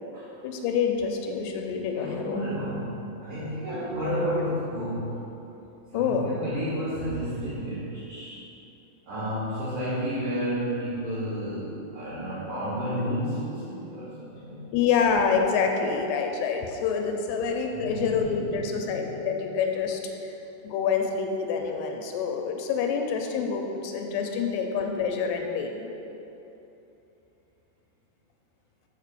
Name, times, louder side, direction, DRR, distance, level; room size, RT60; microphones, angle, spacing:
voice 1, 0.4-2.4 5.9-6.3 14.7-20.3 20.6-25.9, left 6 dB, 85° left, 4 dB, 2.7 m, -27 dB
voice 2, 1.9-5.2 5.9-8.4 9.0-14.6 17.7-19.3, equal, 50° right, -13 dB, 3.0 m, -31 dB
7.4 x 5.3 x 6.6 m, 2.9 s
omnidirectional pair, 4.8 m